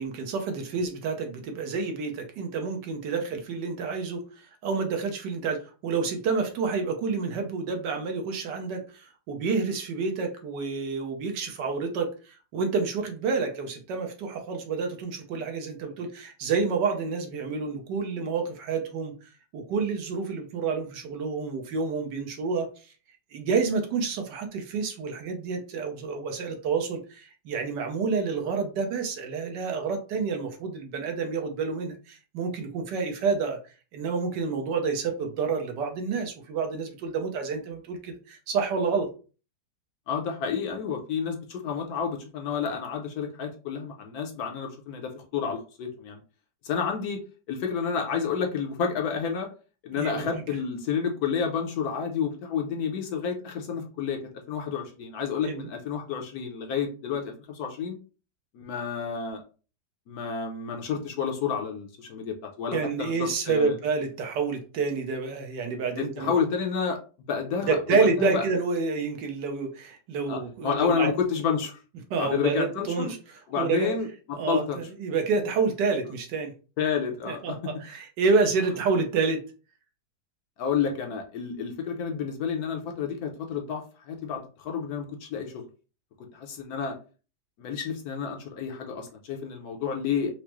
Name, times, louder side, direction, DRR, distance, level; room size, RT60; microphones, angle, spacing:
voice 1, 0.0-22.9 23.3-33.6 33.9-39.1 50.0-50.4 55.4-55.7 62.7-66.3 67.6-71.1 72.1-73.2 73.6-73.9 74.4-76.5 77.3-79.4, right 4 dB, 80° right, 4 dB, 1.4 m, -29 dB
voice 2, 40.1-46.2 46.6-47.2 47.5-49.5 49.8-54.2 54.5-58.0 58.5-59.4 60.1-63.8 66.0-67.0 67.3-68.4 70.3-71.8 72.2-73.1 73.5-74.8 76.8-77.6 80.6-85.7 86.3-87.0 87.6-90.3, left 6 dB, 70° left, 2 dB, 1.1 m, -30 dB
4.6 x 2.0 x 2.9 m, 0.35 s
omnidirectional pair, 1.9 m